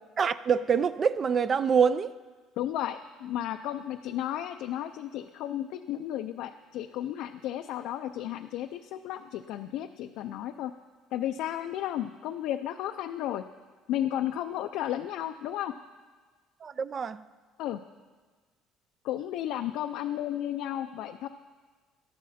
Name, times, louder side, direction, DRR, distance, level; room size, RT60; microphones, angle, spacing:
voice 1, 0.2-2.1 16.6-17.2, right 6 dB, 30° right, 0.4 m, -25 dB
voice 2, 2.6-10.7 11.1-13.5 13.9-15.7 17.6-17.8 19.0-21.3, left 12 dB, 65° left, 0.5 m, -33 dB
18.5 x 13.0 x 4.2 m
cardioid pair, 155°, 0 cm